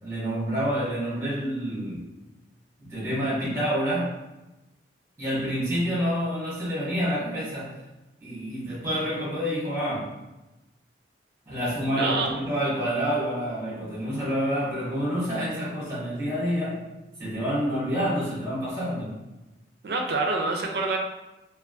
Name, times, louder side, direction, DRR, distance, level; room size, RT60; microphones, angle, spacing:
voice 1, 0.0-2.0 2.8-4.1 5.2-7.8 8.2-10.1 11.5-16.8 17.2-19.1, equal, 15° right, -8 dB, 1.3 m, -28 dB
voice 2, 11.9-12.4 19.8-21.0, right 3 dB, 55° right, 2 dB, 0.4 m, -26 dB
3.4 x 2.3 x 2.4 m, 0.99 s
head